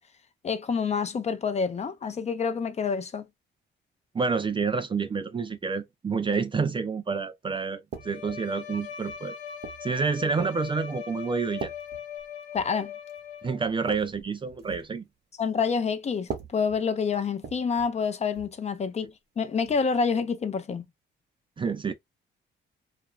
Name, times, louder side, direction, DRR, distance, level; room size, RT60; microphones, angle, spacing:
voice 1, 0.4-3.2 12.5-12.9 15.4-20.9, left 5 dB, 35° left, 0.5 m, -28 dB
voice 2, 4.1-9.3 9.8-11.7 13.4-15.0 21.6-21.9, right 5 dB, 25° right, 0.4 m, -28 dB
sound 1, 7.9-8.4 9.1-9.9 10.6-10.9 11.6-12.8 13.1-13.3 13.6-14.9 16.2-18.0 18.3-18.6 19.6-19.8, right 6 dB, 55° right, 0.9 m, -41 dB
Bowed string instrument, 8.0-13.8, left 8 dB, 70° left, 0.8 m, -40 dB
2.4 x 2.3 x 2.9 m
cardioid pair, 90°, 20 cm